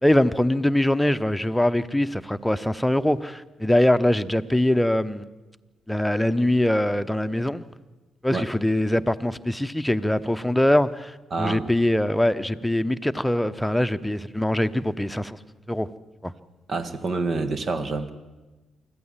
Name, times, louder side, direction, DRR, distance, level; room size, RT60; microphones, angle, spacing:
voice 1, 0.0-5.3 5.9-7.6 8.2-15.4 15.7-15.9 16.2-16.3, left 1 dB, 5° left, 1.0 m, -23 dB
voice 2, 11.3-11.6 16.7-18.1, right 3 dB, 50° right, 1.7 m, -27 dB
25.0 x 14.5 x 7.5 m
hypercardioid pair, 45°, 0 cm